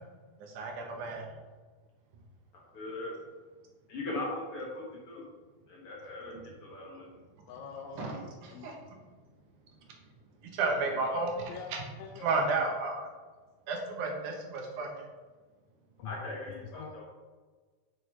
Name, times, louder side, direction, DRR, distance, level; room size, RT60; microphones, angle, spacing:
voice 1, 0.4-1.3 8.0-8.2 8.6-8.8 10.5-11.8 12.2-13.1 13.7-14.9, right 3 dB, 75° right, 1 dB, 2.5 m, -32 dB
voice 2, 2.7-3.2 3.9-5.2 5.7-6.3 6.6-7.2 10.6-10.7 11.1-11.2 16.0-17.1, left 2 dB, 60° left, -3 dB, 1.6 m, -39 dB
voice 3, 7.5-8.2 8.5-8.8 11.4-12.3 16.0-16.2 16.8-16.9, left 6 dB, 80° left, 3 dB, 1.7 m, -44 dB
6.9 x 6.4 x 3.3 m, 1.4 s
omnidirectional pair, 3.6 m